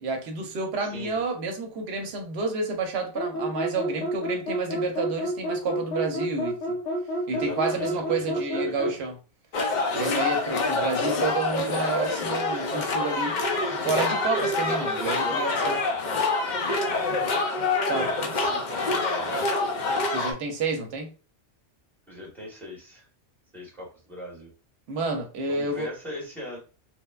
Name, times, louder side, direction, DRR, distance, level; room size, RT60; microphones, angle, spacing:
voice 1, 0.0-6.8 7.3-9.1 9.9-13.4 13.8-15.8 17.9-18.1 20.1-21.1 24.9-25.9, right 3 dB, 65° right, 0.9 m, -30 dB
voice 2, 0.8-1.2 7.3-9.0 14.6-15.9 16.8-19.4 22.1-23.1 23.5-24.5 25.5-26.6, left 1 dB, ahead, 0.9 m, -39 dB
sound 1, 3.1-9.0, right 1 dB, 85° left, 1.0 m, -29 dB
sound 2, 9.5-20.3, left 3 dB, 60° left, 0.5 m, -26 dB
3.1 x 2.1 x 2.3 m
omnidirectional pair, 1.2 m